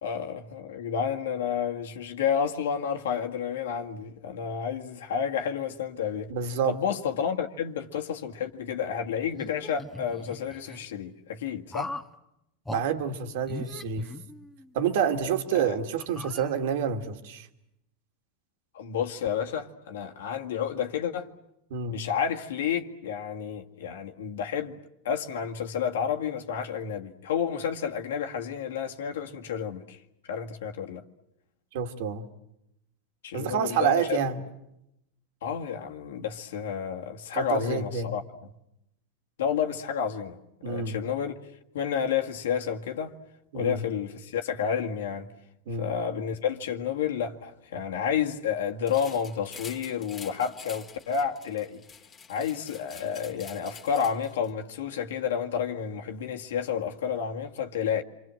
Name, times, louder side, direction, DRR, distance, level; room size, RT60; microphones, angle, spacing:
voice 1, 0.0-11.9 15.5-15.8 18.7-21.3 21.9-24.8 25.0-30.0 30.3-31.0 33.2-34.2 35.4-38.2 39.4-43.1 43.5-45.3 45.7-51.8 52.3-58.0, left 7 dB, 85° left, 2.0 m, -30 dB
voice 2, 6.3-6.8 12.7-14.1 14.7-17.5 21.7-22.1 31.7-32.3 33.3-34.4 37.3-38.1 40.6-41.0 43.5-43.8 45.7-45.9, right 7 dB, 70° right, 2.5 m, -28 dB
sound 1, 9.3-10.8 11.7-12.1 12.6-12.8 13.4-14.7 15.2-15.3 16.0-16.9, left 2 dB, 5° left, 1.8 m, -40 dB
sound 2, 48.9-54.5, left 6 dB, 25° left, 2.0 m, -47 dB
28.5 x 25.0 x 7.7 m
hypercardioid pair, 120°, 0 cm